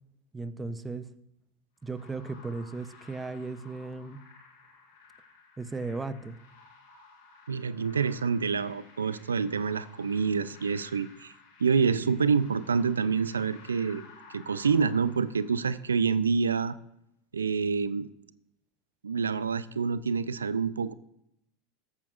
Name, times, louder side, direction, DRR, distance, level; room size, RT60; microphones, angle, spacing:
voice 1, 0.3-1.1 1.8-4.2 5.6-6.4, right 3 dB, 15° right, 13 dB, 0.6 m, -36 dB
sound 1, 1.8-16.2, left 4 dB, 70° left, 3.9 m, -54 dB
voice 2, 7.5-11.3 11.6-14.0 14.3-16.7 17.3-18.1 19.0-20.9, right 5 dB, 90° right, 16 dB, 0.3 m, -27 dB
14.0 x 8.9 x 2.4 m, 0.79 s
hypercardioid pair, 90°, 0 cm